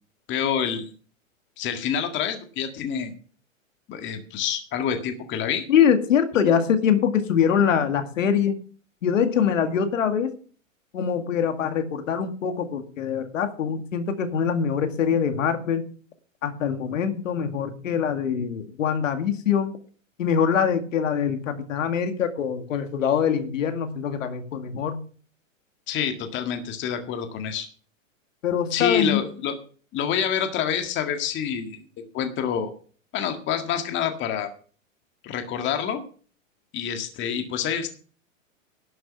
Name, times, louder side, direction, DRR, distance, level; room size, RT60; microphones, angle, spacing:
voice 1, 0.3-0.9 1.6-3.1 3.9-5.7 6.4-6.5 25.9-27.7 28.7-29.6 29.9-31.8 32.1-32.7 33.1-34.5 35.2-36.0 36.7-37.9, left 8 dB, 30° left, 6 dB, 1.8 m, -27 dB
voice 2, 5.7-8.6 9.0-10.3 10.9-15.8 16.4-19.7 20.2-25.0 28.4-29.2, left 7 dB, 70° left, 7 dB, 2.2 m, -23 dB
12.0 x 7.8 x 7.1 m, 0.42 s
hypercardioid pair, 125°, 40 cm